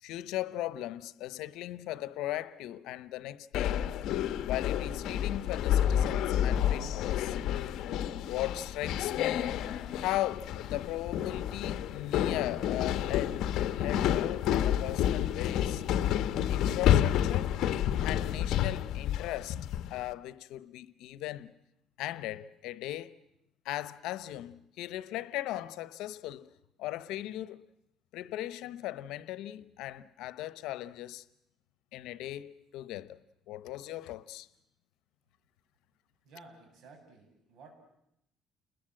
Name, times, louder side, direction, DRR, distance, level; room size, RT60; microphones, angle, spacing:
voice 1, 0.0-3.8 4.4-7.4 8.3-9.5 9.9-15.8 16.5-17.5 18.0-19.6 19.9-21.5 22.0-23.2 23.6-26.5 26.8-27.7 28.1-31.2 31.9-33.2 33.5-34.5, left 14 dB, 90° left, 1.0 m, -38 dB
sound 1, 3.5-20.0, left 10 dB, 70° left, 1.0 m, -29 dB
voice 2, 36.2-37.7, right 3 dB, 65° right, 7.9 m, -54 dB
30.0 x 21.0 x 7.7 m
cardioid pair, 130°, 0 cm